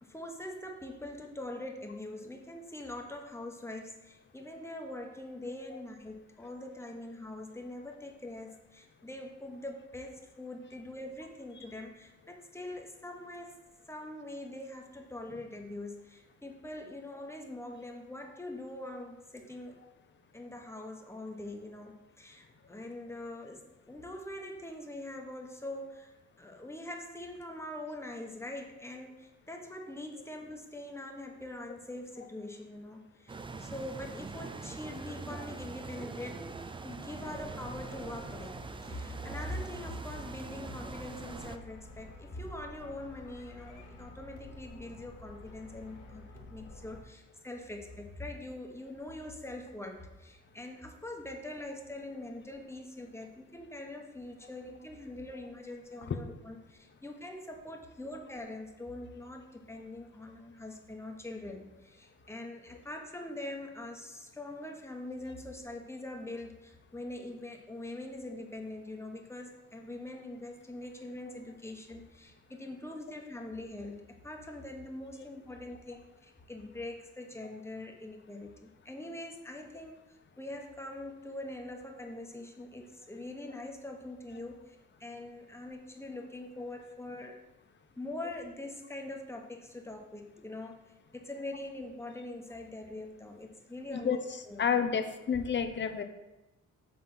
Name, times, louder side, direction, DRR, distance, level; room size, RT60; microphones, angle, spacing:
voice 1, 0.0-13.6 13.9-19.8 20.3-23.6 23.9-36.5 36.8-38.6 38.8-87.4 88.0-94.2 94.5-94.7, left 1 dB, 10° left, 2 dB, 1.2 m, -43 dB
sound 1, 33.3-41.6, right 4 dB, 15° right, 0.4 m, -43 dB
sound 2, 37.1-47.0, left 2 dB, 85° left, 1.2 m, -50 dB
voice 2, 94.6-96.0, left 7 dB, 40° left, 8 dB, 0.8 m, -29 dB
7.7 x 3.6 x 6.1 m, 0.98 s
cardioid pair, 90°, 30 cm